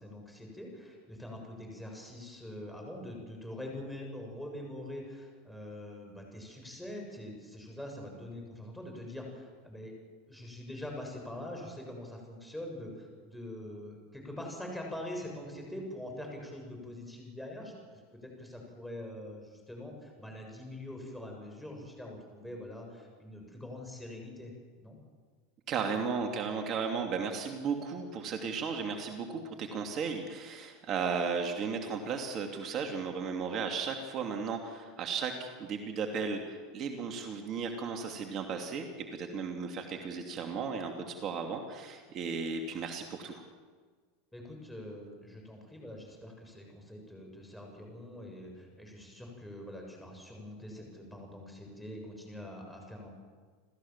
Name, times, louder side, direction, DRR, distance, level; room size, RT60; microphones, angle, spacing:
voice 1, 0.0-9.9 10.3-25.0 44.3-53.1, left 1 dB, 5° left, 1 dB, 7.2 m, -44 dB
voice 2, 25.7-43.4, right 5 dB, 45° right, 3 dB, 2.8 m, -35 dB
29.5 x 14.5 x 7.5 m, 1.5 s
hypercardioid pair, 100°, 0 cm